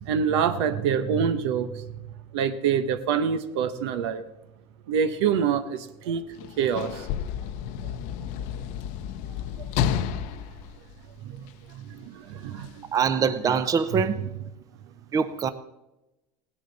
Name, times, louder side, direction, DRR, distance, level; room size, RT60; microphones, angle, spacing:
voice 1, 0.0-1.8 2.3-4.2 4.9-6.2 6.6-7.1 9.9-10.3 11.2-12.8 13.9-14.0, right 7 dB, 90° right, 1.0 m, -26 dB
Sliding door / Slam, 6.3-11.7 12.6-12.7, left 9 dB, 65° left, 0.7 m, -31 dB
voice 2, 12.9-14.2 15.1-15.5, right 6 dB, 25° right, 0.7 m, -23 dB
17.5 x 10.0 x 4.1 m
supercardioid pair, 135°, 14 cm